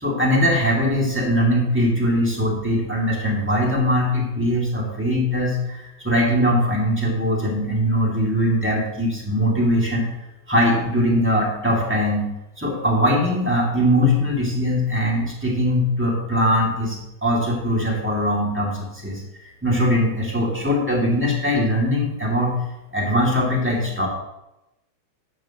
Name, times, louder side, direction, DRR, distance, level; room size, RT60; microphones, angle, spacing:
voice 1, 0.0-5.8 6.0-10.1 10.5-12.3 12.6-17.0 17.2-19.2 19.6-22.5 22.9-24.1, equal, 5° right, -3 dB, 2.0 m, -21 dB
12.5 x 9.9 x 3.0 m, 0.91 s
omnidirectional pair, 3.3 m